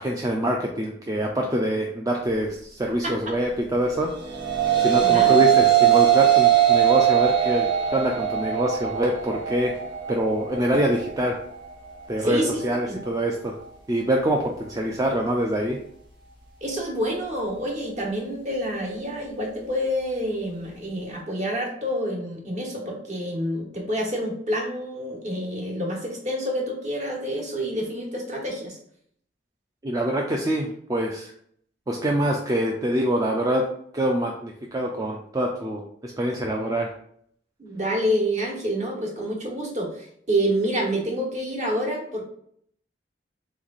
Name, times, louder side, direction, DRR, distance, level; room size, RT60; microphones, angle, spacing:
voice 1, 0.0-4.1 4.8-9.7 10.1-11.4 12.1-13.6 13.9-15.8 29.8-31.3 31.9-33.6 33.9-36.9, right 1 dB, 20° right, 0 dB, 0.4 m, -25 dB
sound 1, 4.1-13.3, right 11 dB, 90° right, 1.2 m, -21 dB
voice 2, 5.0-5.3 12.2-13.0 16.6-28.8 37.6-42.2, equal, 45° right, 0 dB, 1.3 m, -28 dB
3.5 x 3.2 x 4.0 m, 0.65 s
head